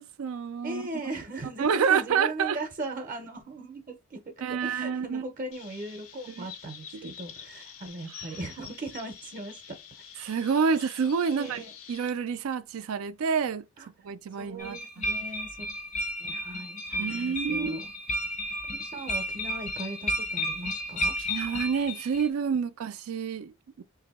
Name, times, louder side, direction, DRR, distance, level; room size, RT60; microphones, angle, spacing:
voice 1, 0.0-0.8 1.6-2.6 4.4-5.2 6.4-6.5 6.9-7.1 8.2-8.3 10.2-11.6 11.9-13.6 14.0-15.0 16.9-17.8 21.2-23.8, right 6 dB, 80° right, 0.4 m, -28 dB
voice 2, 0.6-9.8 11.3-11.7 13.8-13.9 14.4-15.7 16.2-17.9 18.7-21.2, right 2 dB, 40° right, 0.6 m, -38 dB
Chirp tweet, 5.5-12.1, left 8 dB, 80° left, 0.7 m, -47 dB
sound 1, 14.6-22.3, left 1 dB, 35° left, 0.5 m, -32 dB
2.9 x 2.6 x 4.0 m
head